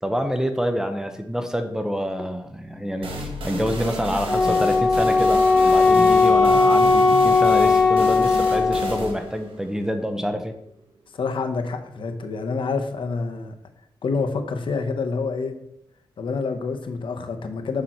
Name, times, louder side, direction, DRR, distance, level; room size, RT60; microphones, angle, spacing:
voice 1, 0.0-10.5, equal, 5° right, 7 dB, 0.7 m, -27 dB
sound 1, 3.0-10.5, right 1 dB, 90° right, 1.4 m, -32 dB
Wind instrument woodwind instrument, 4.3-9.1, left 4 dB, 15° left, 2.8 m, -17 dB
voice 2, 11.2-13.5 14.0-15.5 16.2-17.8, left 4 dB, 75° left, 6 dB, 0.9 m, -27 dB
6.8 x 6.2 x 4.3 m, 0.77 s
wide cardioid pair, 100°, 9 cm